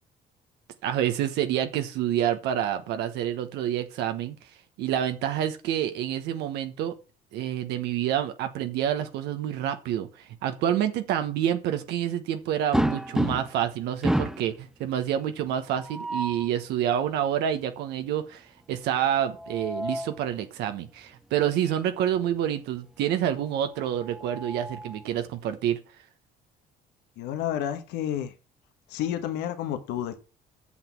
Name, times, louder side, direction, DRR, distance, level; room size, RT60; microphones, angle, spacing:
voice 1, 0.8-4.4 4.8-6.9 7.3-25.8, right 10 dB, 85° right, 1.2 m, -28 dB
sound 1, 12.7-13.7 14.0-14.5 15.7-16.5 19.1-20.2 21.6-21.8 22.1-22.2 23.8-25.0, right 1 dB, 5° right, 0.5 m, -30 dB
voice 2, 27.2-28.3 28.9-30.2, left 10 dB, 90° left, 1.3 m, -30 dB
7.7 x 6.2 x 7.5 m
cardioid pair, 110°, 17 cm